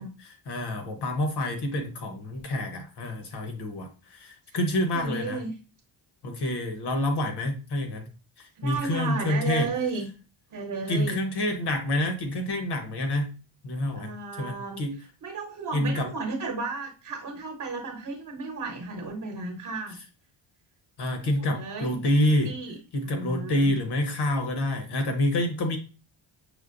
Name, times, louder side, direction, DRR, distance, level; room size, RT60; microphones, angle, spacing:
voice 1, 0.0-5.4 6.2-8.1 8.4-9.7 10.9-13.3 13.6-14.1 14.4-14.9 15.7-16.1 21.0-22.5 22.9-25.8, left 1 dB, 55° left, 5 dB, 0.9 m, -27 dB
voice 2, 4.9-5.5 8.5-10.1 10.5-11.2 13.9-14.8 15.2-20.0 21.1-22.0 22.4-22.8 23.0-23.7, right 3 dB, 40° right, 1 dB, 1.0 m, -34 dB
6.1 x 2.1 x 2.5 m, 0.34 s
cardioid pair, 105°, 49 cm